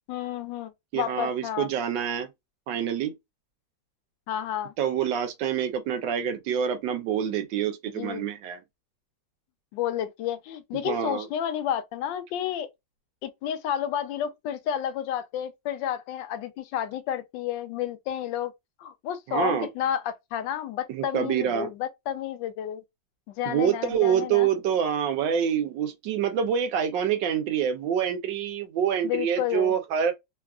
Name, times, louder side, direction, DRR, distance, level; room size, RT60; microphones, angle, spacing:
voice 1, 0.1-1.7 4.3-4.7 7.9-8.2 9.7-12.7 13.2-18.5 18.8-22.8 23.3-24.5 29.0-29.7, left 10 dB, 80° left, 1.3 m, -31 dB
voice 2, 0.9-2.3 2.7-3.1 4.8-8.6 10.8-11.3 19.3-19.7 20.9-21.7 23.4-30.1, right 8 dB, 80° right, 1.3 m, -26 dB
3.5 x 2.3 x 2.3 m
omnidirectional pair, 2.0 m